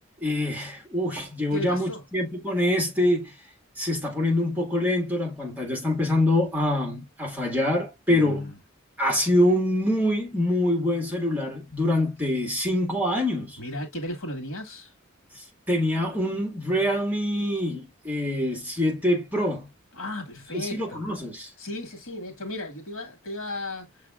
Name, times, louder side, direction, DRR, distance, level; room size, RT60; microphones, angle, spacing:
voice 1, 0.2-3.3 3.8-8.5 9.0-13.6 15.4-19.7 20.5-21.5, left 1 dB, 10° right, 1.8 m, -25 dB
voice 2, 1.5-2.0 8.1-8.5 13.6-14.9 19.9-21.0 21.6-23.9, left 1 dB, 75° left, 2.1 m, -35 dB
6.5 x 3.4 x 2.4 m
head